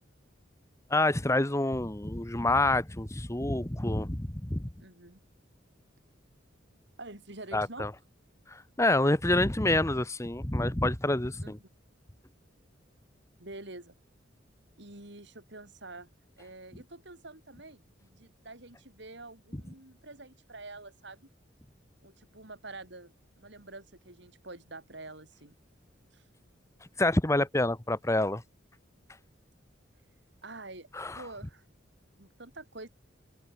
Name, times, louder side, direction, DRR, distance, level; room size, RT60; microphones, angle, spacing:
voice 1, 0.9-4.7 7.5-7.9 8.5-11.6 19.5-19.6 27.0-28.4 30.9-31.2, left 2 dB, 15° left, 1.0 m, -27 dB
voice 2, 4.8-5.2 7.0-7.9 11.4-11.6 13.4-14.0 14.8-16.1 16.4-21.3 22.0-25.6 26.1-26.2 30.4-30.9 31.1-31.6 32.2-32.9, right 2 dB, 60° right, 4.5 m, -47 dB
open air
head